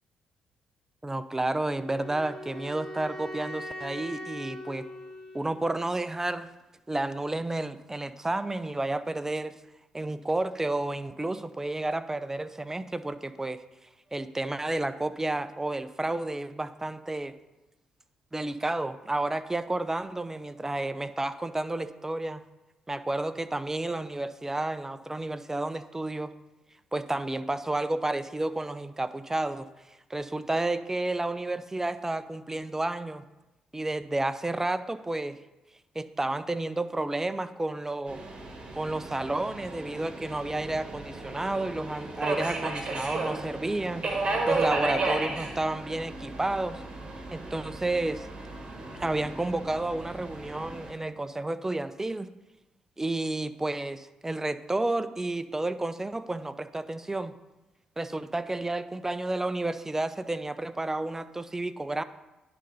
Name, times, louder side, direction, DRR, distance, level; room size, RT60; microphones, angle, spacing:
voice 1, 1.0-4.8 5.3-6.5 6.9-9.5 9.9-13.6 14.1-17.3 18.3-22.4 22.9-26.3 26.9-29.7 30.1-33.2 33.7-35.4 36.0-38.2 38.7-46.8 47.3-48.3 48.9-52.3 53.0-57.3 58.0-62.0, right 2 dB, 20° right, 13 dB, 0.5 m, -31 dB
Wind instrument woodwind instrument, 1.7-5.8, left 1 dB, 20° left, 2.7 m, -41 dB
Subway metro underground, 38.1-50.9, right 2 dB, 45° right, 1.6 m, -34 dB
9.9 x 3.8 x 5.4 m, 1.0 s
hypercardioid pair, 50°, 2 cm